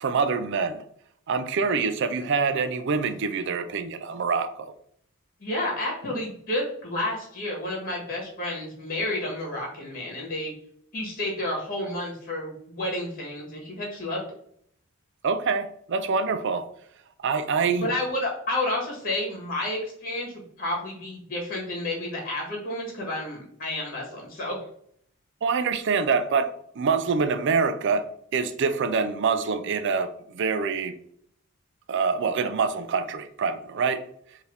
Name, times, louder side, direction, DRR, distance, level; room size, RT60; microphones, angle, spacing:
voice 1, 0.0-0.8 1.3-4.7 15.2-16.7 17.2-17.9 25.4-28.1 28.3-30.9 31.9-34.1, right 5 dB, 55° right, 0.4 m, -25 dB
voice 2, 5.4-10.5 10.9-14.2 17.7-20.3 20.6-24.6, left 1 dB, 45° left, 1.5 m, -30 dB
4.6 x 2.8 x 3.3 m
head